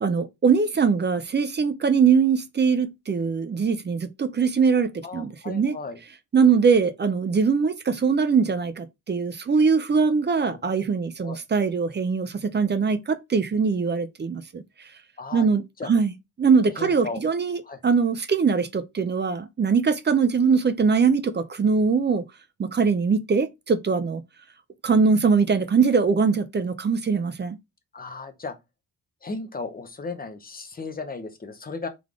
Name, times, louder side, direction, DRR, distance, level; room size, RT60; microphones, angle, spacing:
voice 1, 0.0-5.8 6.3-14.6 15.3-16.1 16.4-17.6 17.8-22.2 22.6-24.2 24.8-27.6, right 5 dB, 30° right, 0.4 m, -22 dB
voice 2, 5.0-6.0 10.4-10.6 11.2-11.4 15.2-15.5 15.8-15.9 16.8-17.2 17.6-17.8 27.9-28.6 29.2-31.9, left 3 dB, 25° left, 0.7 m, -35 dB
3.8 x 3.4 x 3.5 m
wide cardioid pair, 175°, 38 cm